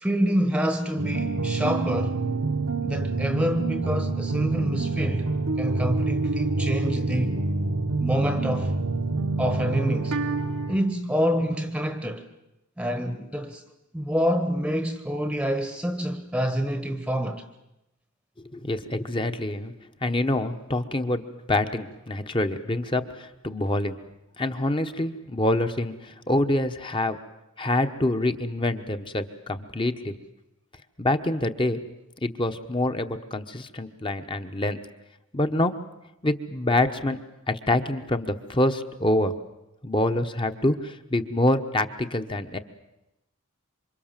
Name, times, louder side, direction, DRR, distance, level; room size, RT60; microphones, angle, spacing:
voice 1, 0.0-2.2 2.8-5.3 5.6-7.4 8.0-8.7 9.4-10.2 10.7-12.2 12.8-13.6 13.9-17.5, equal, 5° right, 1.1 m, -27 dB
sound 1, 1.0-10.8, right 3 dB, 70° right, 1.1 m, -26 dB
voice 2, 18.4-19.7 20.0-24.0 24.4-27.2 27.6-30.1 31.0-31.8 32.2-34.8 35.3-35.7 36.2-37.2 37.5-39.3 39.8-42.6, left 1 dB, 25° left, 1.1 m, -26 dB
27.5 x 25.0 x 7.5 m
head